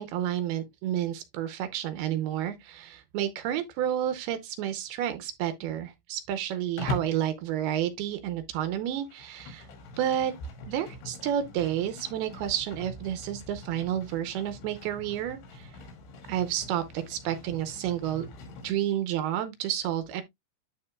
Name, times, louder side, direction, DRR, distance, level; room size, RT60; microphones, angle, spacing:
voice 1, 0.0-9.7 10.0-10.3 10.7-15.7 16.3-18.3 18.6-20.2, right 11 dB, 80° right, 2.5 m, -30 dB
Livestock farm animals working animals, 6.8-7.2 8.9-18.8, left 2 dB, 80° left, 4.3 m, -42 dB
12.0 x 4.2 x 2.2 m
omnidirectional pair, 4.9 m